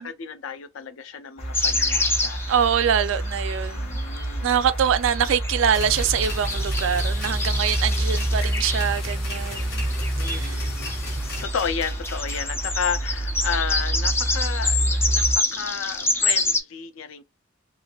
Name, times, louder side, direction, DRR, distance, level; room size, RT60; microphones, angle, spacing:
voice 1, 0.0-2.4 3.7-4.5 5.2-5.4 10.2-10.9 11.2-17.2, left 6 dB, 85° left, 0.5 m, -32 dB
sound 1, 1.4-15.4, right 1 dB, 30° left, 0.9 m, -28 dB
sound 2, 1.5-3.6 3.9-4.2 4.9-16.6, left 2 dB, 10° left, 0.4 m, -28 dB
voice 2, 2.5-4.0 4.4-9.8 10.2-10.6, right 8 dB, 70° right, 0.3 m, -24 dB
sound 3, 5.7-11.4, left 2 dB, 55° left, 1.1 m, -36 dB
3.2 x 2.4 x 2.2 m
head